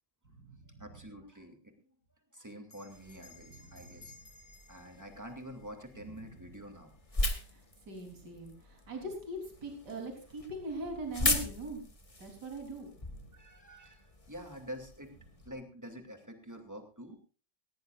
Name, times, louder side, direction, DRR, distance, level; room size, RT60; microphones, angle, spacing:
voice 1, 0.2-1.0 3.5-4.2 6.0-6.5 7.4-11.8 12.2-13.3, right 1 dB, 60° right, 2 dB, 4.4 m, -42 dB
voice 2, 0.8-1.7 2.3-4.1 4.7-6.9 13.3-15.1 15.4-17.2, equal, 10° right, 5 dB, 2.6 m, -47 dB
Bell, 2.6-7.5, left 3 dB, 70° left, 8.1 m, -59 dB
sound 1, 2.9-15.5, left 2 dB, 20° left, 1.6 m, -39 dB
19.0 x 17.0 x 2.5 m, 0.37 s
omnidirectional pair, 2.0 m